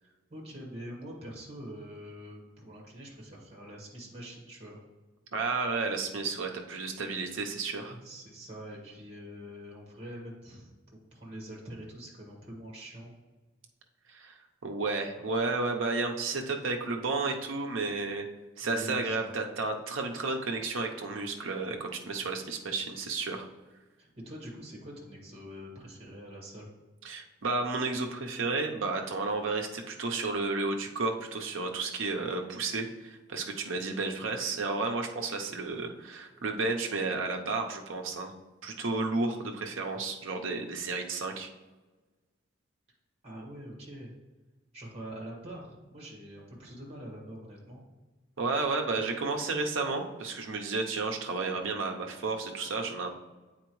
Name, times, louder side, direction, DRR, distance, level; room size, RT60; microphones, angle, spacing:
voice 1, 0.0-4.8 7.9-13.1 18.6-19.3 24.0-26.7 43.2-44.1 44.7-47.8, equal, 30° right, -2 dB, 1.5 m, -45 dB
voice 2, 5.3-8.0 14.1-14.3 14.6-18.3 18.6-23.5 27.0-38.3 38.6-41.5 48.4-53.1, right 3 dB, 75° right, 3 dB, 0.8 m, -32 dB
8.5 x 4.3 x 3.1 m, 1.2 s
head